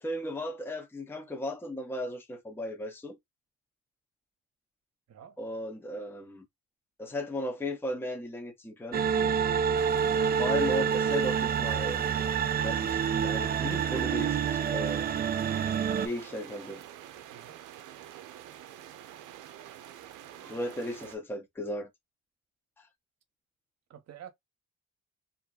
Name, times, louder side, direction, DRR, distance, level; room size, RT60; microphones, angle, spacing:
voice 1, 0.0-3.2 5.4-6.4 7.0-9.0 10.4-12.1 12.6-15.0 16.0-16.8 20.4-21.9, left 1 dB, 5° left, 0.6 m, -36 dB
sound 1, 8.9-16.1, right 7 dB, 30° right, 0.4 m, -27 dB
sound 2, 9.7-21.2, right 11 dB, 85° right, 0.6 m, -47 dB
voice 2, 17.3-17.6 23.9-24.3, right 9 dB, 55° right, 0.8 m, -48 dB
2.7 x 2.6 x 2.3 m
cardioid pair, 90°, 30 cm